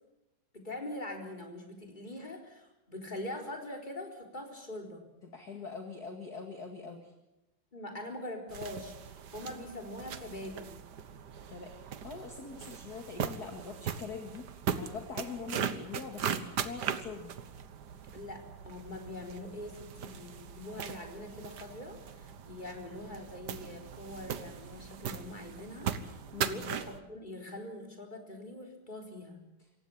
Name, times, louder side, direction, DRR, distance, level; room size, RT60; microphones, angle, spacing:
voice 1, 0.5-5.0 7.7-10.7 18.1-29.4, left 1 dB, 20° left, 2 dB, 4.3 m, -43 dB
voice 2, 5.2-7.1 11.5-17.3 26.3-26.6, left 5 dB, 45° left, 3 dB, 2.5 m, -43 dB
sound 1, 8.5-27.0, right 7 dB, 55° right, 1.7 m, -39 dB
27.0 x 16.0 x 8.7 m, 0.93 s
omnidirectional pair, 2.4 m